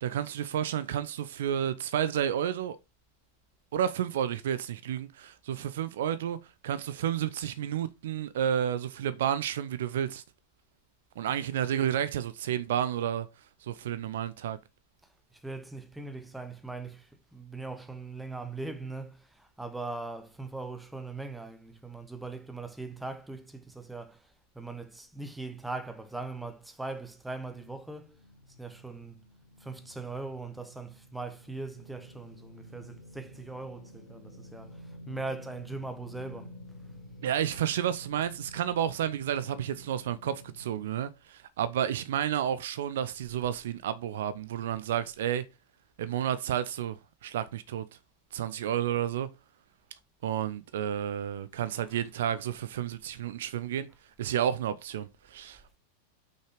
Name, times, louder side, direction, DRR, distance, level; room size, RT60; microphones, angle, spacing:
voice 1, 0.0-2.8 3.7-6.4 6.6-10.2 11.2-13.3 13.6-14.6 37.2-45.4 46.0-47.0 47.2-47.9 48.3-49.3 50.2-53.9 54.2-55.8, right 10 dB, 60° right, 0.6 m, -31 dB
voice 2, 15.3-28.2 28.6-29.2 29.6-36.5 51.9-52.0, right 3 dB, 5° right, 1.1 m, -40 dB
sound 1, 27.5-40.8, equal, 70° left, 1.9 m, -50 dB
6.0 x 5.5 x 5.0 m
figure-of-eight pair, 90°, 0 cm